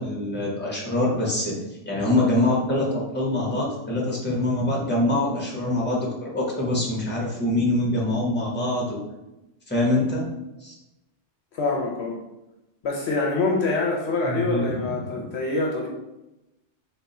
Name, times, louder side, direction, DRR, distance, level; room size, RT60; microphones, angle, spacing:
voice 1, 0.0-9.0 9.7-10.3 10.6-10.7 14.2-15.3, left 1 dB, 10° left, -4 dB, 1.2 m, -24 dB
voice 2, 11.5-12.2 12.8-15.9, left 3 dB, 65° left, -1 dB, 0.9 m, -25 dB
3.7 x 3.5 x 4.1 m, 0.98 s
omnidirectional pair, 1.3 m